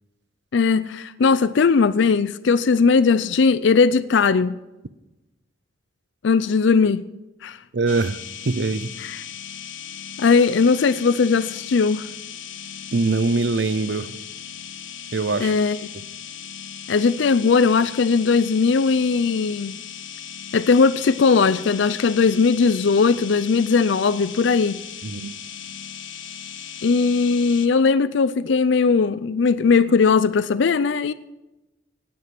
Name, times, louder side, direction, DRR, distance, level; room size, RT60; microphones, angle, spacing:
voice 1, 0.5-4.6 6.2-7.0 7.4-7.6 9.0-9.2 10.2-12.1 15.4-15.8 16.9-19.8 20.5-24.8 26.8-31.1, left 5 dB, 70° left, 0.4 m, -18 dB
voice 2, 7.7-8.2 8.5-8.9 12.9-14.2 15.1-15.5 25.0-25.3, right 3 dB, 65° right, 0.6 m, -23 dB
sound 1, 7.9-27.7, left 8 dB, 90° left, 1.3 m, -37 dB
17.0 x 9.6 x 6.0 m
head